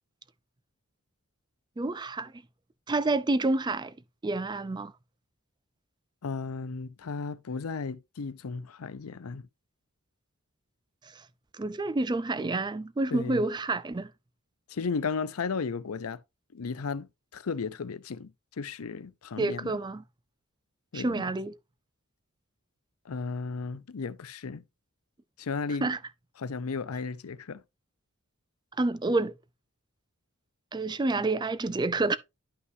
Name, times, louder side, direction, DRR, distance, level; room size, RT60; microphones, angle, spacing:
voice 1, 1.8-2.3 2.9-4.0 4.2-4.9 11.1-11.2 11.5-14.1 19.4-20.0 20.9-21.6 25.8-26.0 28.8-29.4 30.7-32.2, right 2 dB, 20° right, 0.4 m, -28 dB
voice 2, 6.2-9.5 13.1-13.4 14.7-16.2 16.5-19.8 20.9-21.2 23.0-24.6 25.4-25.9 26.4-27.6, left 4 dB, 85° left, 0.6 m, -34 dB
11.0 x 5.6 x 2.6 m
head